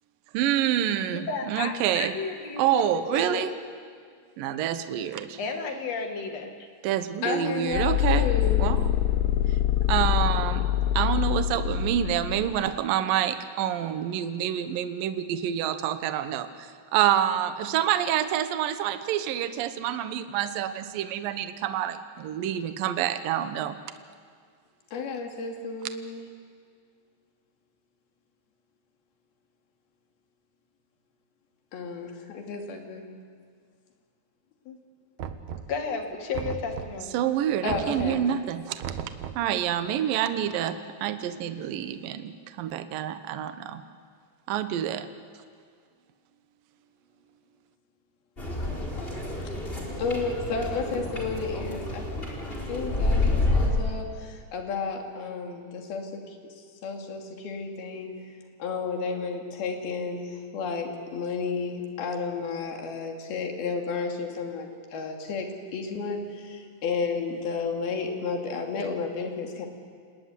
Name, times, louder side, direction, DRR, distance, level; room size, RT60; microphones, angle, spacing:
voice 1, 0.3-2.1 2.6-3.5 4.4-5.4 6.8-8.3 8.6-8.8 9.9-10.6 10.9-23.8 37.1-38.8 39.3-43.8 44.5-45.1, right 10 dB, 65° right, 10 dB, 2.4 m, -27 dB
voice 2, 1.1-2.8 3.1-3.5 5.4-6.5 35.7-37.2, left 5 dB, 45° left, 4 dB, 2.7 m, -32 dB
voice 3, 7.2-8.6 24.9-26.3 31.7-33.1 34.7-34.8 37.6-38.2 50.0-52.1 52.7-56.4 56.8-58.1 58.6-69.7, left 4 dB, 65° left, 2 dB, 4.3 m, -32 dB
sound 1, 7.7-12.6, left 12 dB, 80° left, 3.1 m, -25 dB
Knock, 35.2-35.9 36.3-37.1 37.7-38.3 38.8-39.5, right 8 dB, 85° right, 1.6 m, -36 dB
sound 2, 48.4-53.7, left 2 dB, 15° left, 4.2 m, -28 dB
29.0 x 18.5 x 9.7 m, 2.1 s
omnidirectional pair, 5.0 m